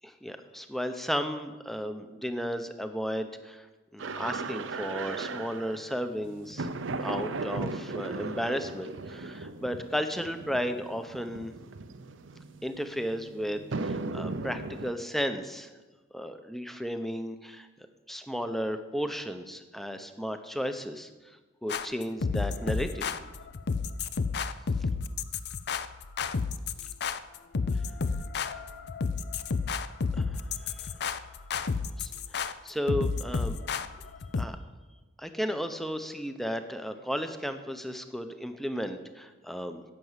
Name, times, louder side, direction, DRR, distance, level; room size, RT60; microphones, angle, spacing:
voice 1, 0.2-3.7 3.9-6.7 7.0-11.5 12.6-15.7 16.1-17.7 18.1-21.1 21.6-23.1 30.2-30.9 32.0-33.6 34.3-34.6 35.2-39.8, equal, ahead, 8 dB, 0.8 m, -34 dB
sound 1, 4.0-14.9, right 3 dB, 90° right, 0.7 m, -37 dB
sound 2, 21.7-34.5, left 4 dB, 60° left, 0.5 m, -31 dB
10.5 x 7.7 x 8.1 m, 1.2 s
head